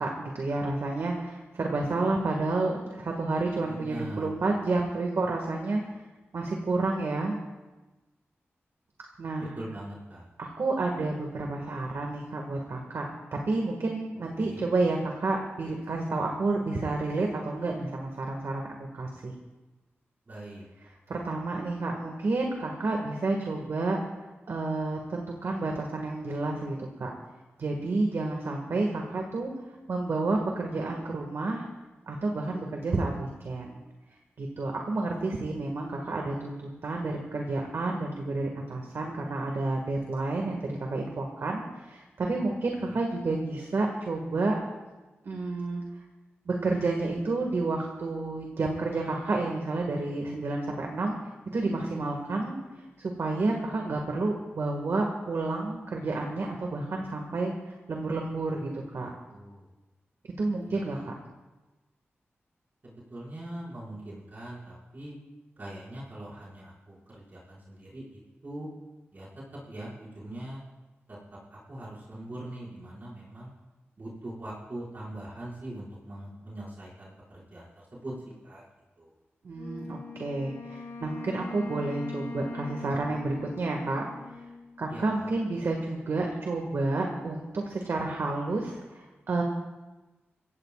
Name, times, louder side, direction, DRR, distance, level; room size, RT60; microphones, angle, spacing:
voice 1, 0.0-6.0 6.3-7.4 9.2-9.6 10.4-13.1 13.5-19.3 21.1-24.0 24.5-27.1 27.6-29.5 29.9-31.7 32.1-33.8 34.4-44.6 45.2-45.8 46.5-51.2 51.5-59.1 60.4-61.1 79.4-84.0 84.8-89.4, right 2 dB, 70° right, 1 dB, 2.0 m, -30 dB
voice 2, 3.6-4.3 9.6-10.3 14.4-14.7 20.3-20.6 42.8-43.0 58.5-59.7 60.7-61.0 62.8-65.1 65.6-68.7 69.1-69.3 69.7-70.6 71.1-71.2 71.5-73.5 74.0-78.1 78.4-78.6 79.0-79.1 84.9-85.3, right 1 dB, 45° right, -7 dB, 5.9 m, -42 dB
Wind instrument woodwind instrument, 79.5-85.0, left 2 dB, 85° left, 6.6 m, -41 dB
24.0 x 16.5 x 2.5 m, 1.1 s
wide cardioid pair, 90°, 4 cm